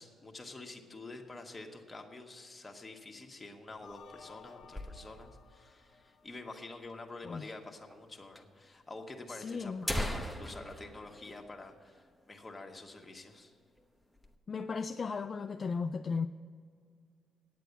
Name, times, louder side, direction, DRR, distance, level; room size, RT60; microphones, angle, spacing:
voice 1, 0.0-13.5, left 2 dB, 20° left, 2 dB, 1.5 m, -48 dB
sound 1, 3.7-5.5 5.8-5.9 6.1-6.2 6.9-7.0 7.9-8.0 8.3-8.4 9.2-9.3 9.6-12.2 12.6-12.7 13.1-13.4 13.8-14.3, left 1 dB, ahead, 1.0 m, -40 dB
sound 2, 3.8-6.9, left 6 dB, 70° left, 0.8 m, -57 dB
voice 2, 9.4-9.9 14.5-16.3, left 5 dB, 40° left, 8 dB, 0.3 m, -35 dB
9.3 x 8.1 x 8.1 m, 2.1 s
cardioid pair, 90°, 0 cm